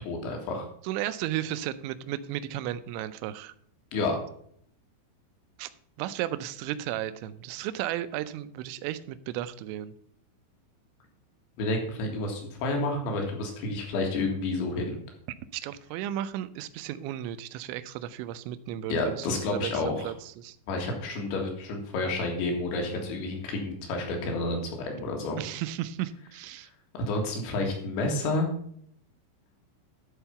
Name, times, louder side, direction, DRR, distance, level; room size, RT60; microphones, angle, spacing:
voice 1, 0.0-0.7 3.9-4.2 11.6-15.0 18.9-20.1 20.7-25.4 27.0-28.5, left 2 dB, 70° left, 2 dB, 4.0 m, -30 dB
voice 2, 0.8-3.5 5.6-5.7 6.0-9.9 15.5-20.6 25.4-26.7, right 12 dB, 85° right, 13 dB, 2.7 m, -34 dB
11.5 x 4.5 x 5.7 m, 0.64 s
omnidirectional pair, 5.6 m